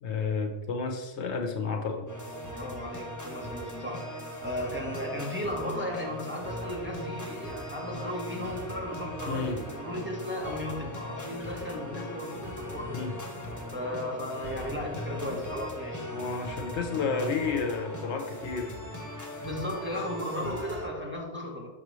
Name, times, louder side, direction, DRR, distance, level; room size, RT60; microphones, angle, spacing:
voice 1, 0.0-2.1 9.3-9.6 12.9-13.1 15.3-15.4 16.1-18.8 20.4-20.6, left 4 dB, 70° left, 4 dB, 1.0 m, -31 dB
sound 1, 2.1-20.9, left 1 dB, 15° left, 0.8 m, -39 dB
voice 2, 2.4-13.0 13.7-16.1 19.4-21.7, left 1 dB, 10° right, -2 dB, 1.0 m, -35 dB
6.4 x 6.0 x 3.1 m, 1.2 s
omnidirectional pair, 1.2 m